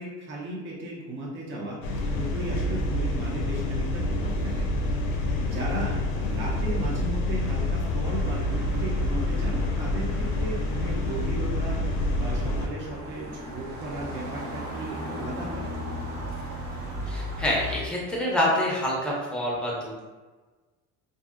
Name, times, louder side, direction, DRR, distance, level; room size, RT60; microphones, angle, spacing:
voice 1, 0.0-1.8 2.1-4.7 5.4-15.7, right 1 dB, 35° right, -3 dB, 0.6 m, -36 dB
sound 1, 1.8-12.7, left 1 dB, 85° left, 0.5 m, -27 dB
sound 2, 8.0-17.8, equal, 75° right, 0.9 m, -37 dB
voice 2, 17.1-20.0, left 1 dB, 5° left, -5 dB, 0.6 m, -27 dB
2.7 x 2.6 x 2.4 m, 1.3 s
cardioid pair, 140°, 31 cm